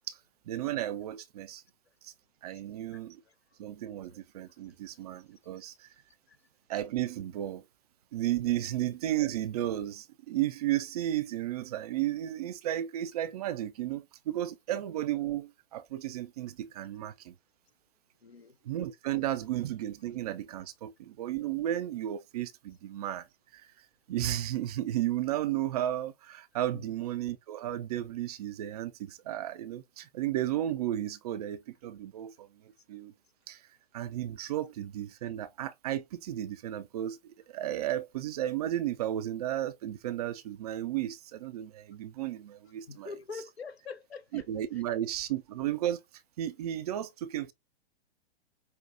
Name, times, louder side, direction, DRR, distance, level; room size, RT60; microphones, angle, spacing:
voice 1, 0.5-1.6 2.0-2.1 2.4-3.2 3.6-5.9 6.7-7.6 8.1-17.3 18.6-23.3 23.5-23.6 24.1-32.5 32.9-33.1 33.5-33.6 33.9-43.1 44.3-46.0 46.4-47.5, right 12 dB, 40° right, 0.4 m, -33 dB
voice 2, 2.9-3.3 6.3-6.4 18.2-18.6 26.7-27.0 42.9-44.4 44.7-44.8, left 5 dB, 85° left, 0.7 m, -44 dB
5.4 x 2.1 x 2.5 m
figure-of-eight pair, 105°, 31 cm